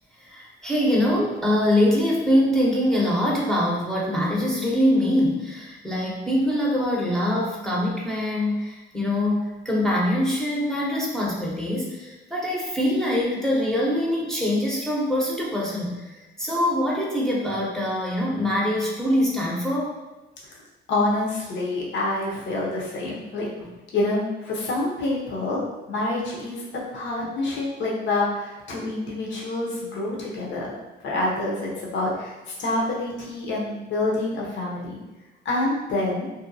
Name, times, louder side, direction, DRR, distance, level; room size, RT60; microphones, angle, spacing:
voice 1, 0.2-16.1 16.4-19.9 23.6-23.7, left 1 dB, ahead, -4 dB, 0.7 m, -23 dB
voice 2, 20.9-23.5 23.9-25.6 25.9-26.6 26.9-30.7 31.0-35.0 35.4-36.3, left 2 dB, 65° left, -4 dB, 0.8 m, -27 dB
2.7 x 2.2 x 2.6 m, 1.1 s
cardioid pair, 90°, 20 cm